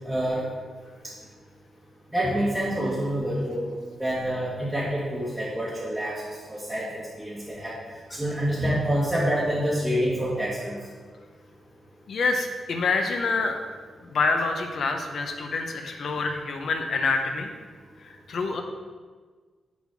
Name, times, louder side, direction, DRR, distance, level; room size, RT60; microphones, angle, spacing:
voice 1, 0.0-0.5 2.1-3.7 4.0-7.8 8.1-10.7, equal, 5° right, -8 dB, 1.5 m, -27 dB
voice 2, 12.1-13.6 14.0-17.5 18.3-18.6, left 4 dB, 55° left, 4 dB, 0.8 m, -26 dB
7.1 x 4.0 x 6.2 m, 1.5 s
wide cardioid pair, 150°, 0 cm